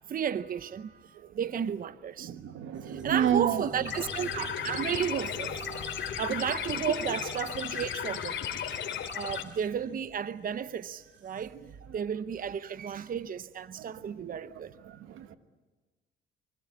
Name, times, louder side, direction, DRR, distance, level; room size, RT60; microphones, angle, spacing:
voice 1, 0.1-2.3 2.8-8.9 9.1-11.6 11.9-14.7, right 8 dB, 45° right, 0.8 m, -33 dB
voice 2, 2.2-3.6 13.8-13.9 14.2-14.4 14.9-15.4, right 9 dB, 85° right, 1.5 m, -30 dB
sound 1, 2.7-11.5, right 3 dB, 70° right, 6.4 m, -47 dB
sound 2, 3.8-9.4, left 9 dB, 70° left, 2.5 m, -35 dB
25.5 x 24.5 x 8.5 m
cardioid pair, 90°, 20 cm